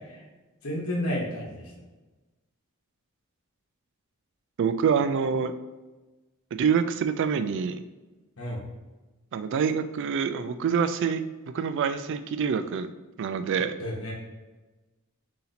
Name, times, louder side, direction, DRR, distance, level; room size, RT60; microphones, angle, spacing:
voice 1, 0.6-1.6 8.4-8.6 13.8-14.1, left 1 dB, 70° left, -2 dB, 1.0 m, -30 dB
voice 2, 4.6-5.5 6.5-7.8 9.3-11.2 11.5-12.9 13.2-13.7, right 6 dB, 55° right, 10 dB, 0.3 m, -26 dB
4.1 x 2.8 x 3.9 m, 1.2 s
head